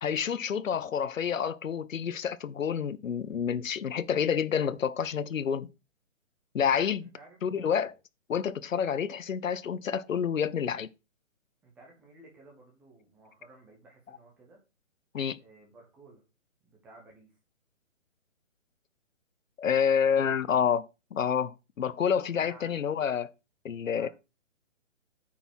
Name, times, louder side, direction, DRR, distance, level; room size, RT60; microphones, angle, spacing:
voice 1, 0.0-5.7 6.5-7.1 7.4-7.9 8.3-10.9 15.1-15.4 19.6-20.9 21.1-23.3 23.6-24.1, left 7 dB, 80° left, 0.8 m, -28 dB
voice 2, 7.0-7.9 11.6-14.6 15.3-16.2 16.6-17.4 20.1-20.4 22.3-22.7 23.9-24.1, right 2 dB, 5° right, 0.7 m, -55 dB
9.0 x 5.6 x 4.4 m
hypercardioid pair, 160°, 39 cm